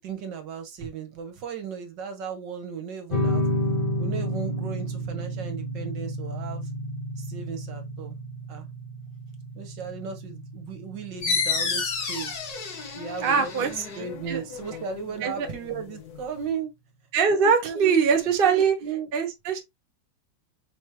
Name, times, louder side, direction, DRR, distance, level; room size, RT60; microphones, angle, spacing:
voice 1, 0.0-3.4 4.0-6.7 7.2-8.2 8.5-8.7 9.5-12.4 12.9-13.7 13.9-16.7 17.3-19.1, right 6 dB, 70° right, 1.7 m, -36 dB
sound 1, 3.1-14.1, equal, 30° left, 1.4 m, -31 dB
sound 2, 11.2-16.5, left 5 dB, 70° left, 1.8 m, -32 dB
voice 2, 13.2-13.8 14.3-14.4 15.2-15.5 17.1-18.8 19.1-19.6, right 6 dB, 40° right, 0.9 m, -22 dB
5.1 x 3.5 x 2.9 m
omnidirectional pair, 2.1 m